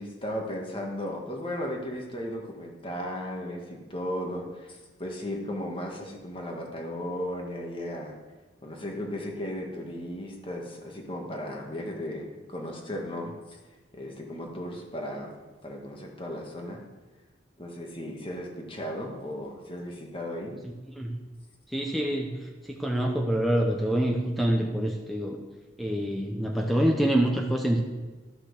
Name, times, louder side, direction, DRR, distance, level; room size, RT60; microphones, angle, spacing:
voice 1, 0.0-8.2 8.6-13.6 13.9-15.4 15.6-16.8 17.6-20.6, left 1 dB, 30° left, 1 dB, 1.8 m, -35 dB
voice 2, 20.6-21.2 21.7-25.4 25.8-27.8, right 1 dB, ahead, 1 dB, 0.8 m, -26 dB
12.0 x 6.2 x 6.6 m, 1.3 s
head